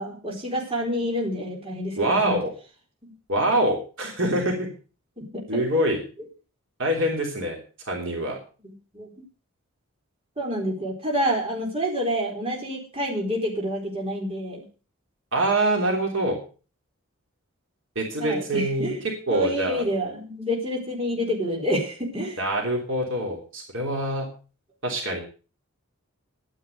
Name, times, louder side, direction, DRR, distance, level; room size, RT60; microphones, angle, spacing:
voice 1, 0.0-2.4 3.0-3.1 4.2-4.3 5.2-5.6 8.6-9.1 10.4-14.6 18.2-19.0 19.3-22.4, equal, 25° right, -2 dB, 4.1 m, -28 dB
voice 2, 2.0-2.5 3.3-4.7 5.5-6.0 6.8-7.6 7.9-8.4 15.3-16.4 18.0-18.9 19.3-19.8 22.4-24.3 24.8-25.2, right 1 dB, 60° right, 0 dB, 3.4 m, -25 dB
11.5 x 9.9 x 6.6 m, 0.37 s
head